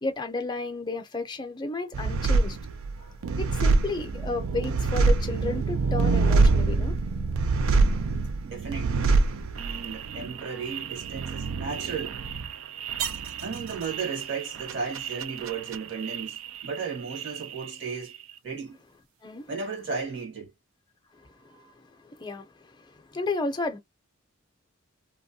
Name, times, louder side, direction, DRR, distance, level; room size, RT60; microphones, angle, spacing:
voice 1, 0.0-2.6 3.4-7.0 19.2-19.5 21.4-23.8, left 3 dB, 20° left, 0.5 m, -33 dB
sound 1, 1.9-16.8 17.1-17.9, right 3 dB, 80° right, 0.4 m, -26 dB
voice 2, 8.4-9.1 9.5-12.2 13.4-18.1 18.4-18.8 19.5-20.5 21.6-21.7, right 5 dB, 60° right, 1.2 m, -35 dB
2.9 x 2.2 x 2.6 m
head